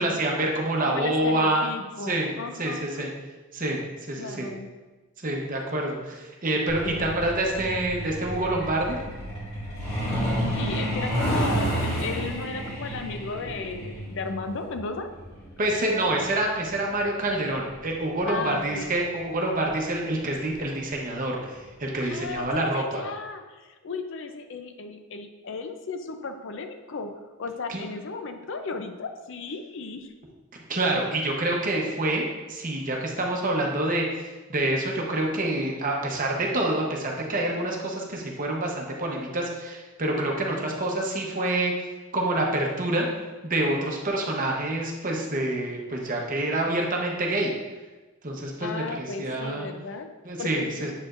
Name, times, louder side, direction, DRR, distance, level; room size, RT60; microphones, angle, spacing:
voice 1, 0.0-1.7 2.0-2.3 2.6-3.1 3.5-3.8 4.1-4.5 5.2-9.0 15.6-23.0 27.7-27.9 30.7-32.2 32.5-41.9 42.1-43.1 43.4-47.5 48.2-49.7 50.2-50.9, right 1 dB, 40° right, 0 dB, 0.9 m, -27 dB
voice 2, 0.8-3.1 4.2-4.7 6.8-7.1 10.5-15.1 18.3-19.0 22.0-27.1 27.4-30.1 48.6-50.1 50.4-50.9, left 4 dB, 60° left, 7 dB, 0.5 m, -35 dB
Truck, 6.7-19.0 20.2-20.4 20.8-20.9 21.3-21.6 21.9-22.0 22.5-22.6, equal, 30° left, 1.9 m, -31 dB
7.5 x 4.9 x 2.5 m, 1.2 s
head